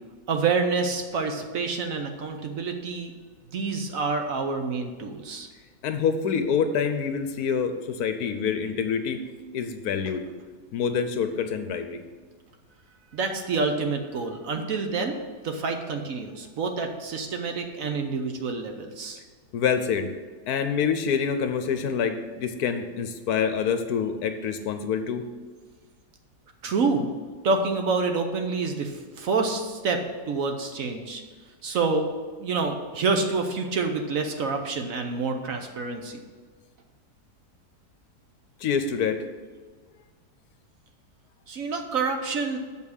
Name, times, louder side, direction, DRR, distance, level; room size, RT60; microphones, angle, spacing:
voice 1, 0.3-3.1 3.5-5.5 13.1-15.2 15.4-19.2 26.6-27.1 27.4-31.2 31.6-32.1 32.4-36.2 41.5-42.6, right 4 dB, 60° right, 5 dB, 1.1 m, -27 dB
voice 2, 5.8-9.2 9.5-10.3 10.7-12.0 19.5-20.1 20.5-25.3 38.6-39.2, left 6 dB, 70° left, 8 dB, 1.1 m, -26 dB
7.0 x 5.5 x 6.4 m, 1.5 s
omnidirectional pair, 1.8 m